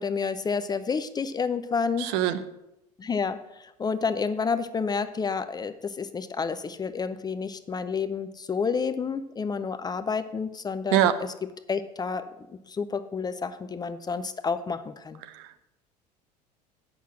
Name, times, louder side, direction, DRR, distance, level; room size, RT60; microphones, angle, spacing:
voice 1, 0.0-2.1 3.0-11.1 11.7-12.2 12.7-15.2, left 5 dB, 20° left, 12 dB, 0.5 m, -29 dB
voice 2, 2.0-2.4 10.9-11.2 15.2-15.6, right 11 dB, 55° right, 11 dB, 0.7 m, -24 dB
8.2 x 6.0 x 6.3 m, 0.90 s
figure-of-eight pair, 70°, 21 cm